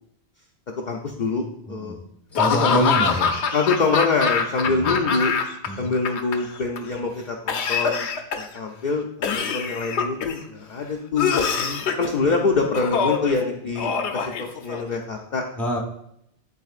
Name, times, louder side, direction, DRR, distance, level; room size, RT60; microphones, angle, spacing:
voice 1, 0.9-2.0 2.5-2.9 3.5-5.3 5.8-8.1 8.3-11.5 11.9-15.4, left 4 dB, 50° left, 0 dB, 0.6 m, -25 dB
voice 2, 1.7-2.0 2.3-3.3 4.6-4.9 5.7-5.9 15.6-15.8, equal, ahead, 0 dB, 0.9 m, -26 dB
Laughter / Cough, 2.3-5.7 5.9-6.8 7.5-8.6 9.2-10.4 11.2-12.1 12.7-13.3 13.8-15.0, left 6 dB, 80° left, 0.9 m, -24 dB
10.5 x 4.1 x 2.4 m, 0.75 s
omnidirectional pair, 1.1 m